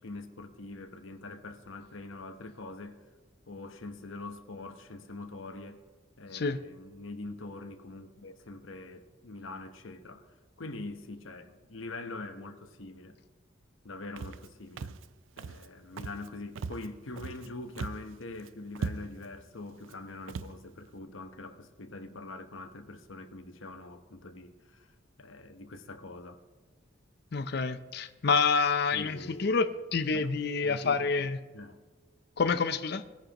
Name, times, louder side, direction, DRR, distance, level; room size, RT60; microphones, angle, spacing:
voice 1, 0.0-3.0 3.5-5.8 6.2-10.3 10.6-13.2 13.8-14.9 15.4-24.9 25.2-26.4 28.9-29.6 30.1-30.3 30.6-31.8, left 2 dB, 85° left, 1.0 m, -44 dB
Walk footsteps, 14.2-14.5 14.8-15.1 15.4-15.7 16.0-16.3 16.6-17.5 17.7-18.1 18.4-18.5 18.7-19.3 19.8-20.0 20.3-20.5, right 4 dB, 80° right, 0.4 m, -38 dB
voice 2, 27.3-31.4 32.4-33.0, left 4 dB, 55° left, 0.5 m, -28 dB
20.0 x 10.5 x 2.9 m
head